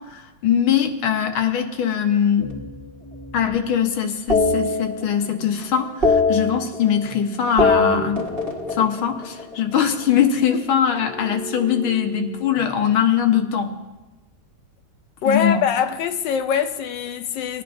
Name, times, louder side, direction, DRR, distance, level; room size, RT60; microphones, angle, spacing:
voice 1, 0.0-2.5 3.3-8.2 8.7-13.8 15.3-15.6, left 8 dB, 90° left, 1.8 m, -21 dB
sound 1, 2.4-3.7 4.3-5.5 5.7-7.2 7.4-9.8 11.0-12.8, left 3 dB, 30° right, 1.5 m, -24 dB
voice 2, 15.2-17.6, left 7 dB, 70° left, 1.2 m, -23 dB
20.5 x 10.0 x 2.6 m
omnidirectional pair, 2.2 m